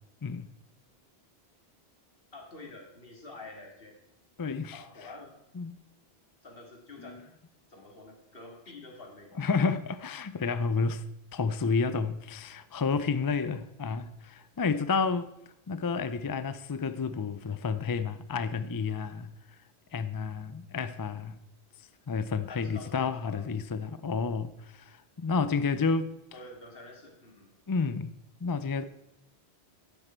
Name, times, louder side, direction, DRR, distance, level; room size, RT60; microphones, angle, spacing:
voice 1, 2.3-4.0 4.7-5.3 6.4-7.2 7.7-9.3 22.5-23.4 26.3-27.5, left 3 dB, 60° left, 2.5 m, -47 dB
voice 2, 4.4-4.8 5.6-5.8 7.0-7.2 9.4-11.0 11.3-15.3 15.7-19.3 19.9-21.4 22.1-26.1 27.7-28.1 28.4-28.8, left 5 dB, 35° left, 0.3 m, -30 dB
12.5 x 9.0 x 4.5 m
omnidirectional pair, 1.1 m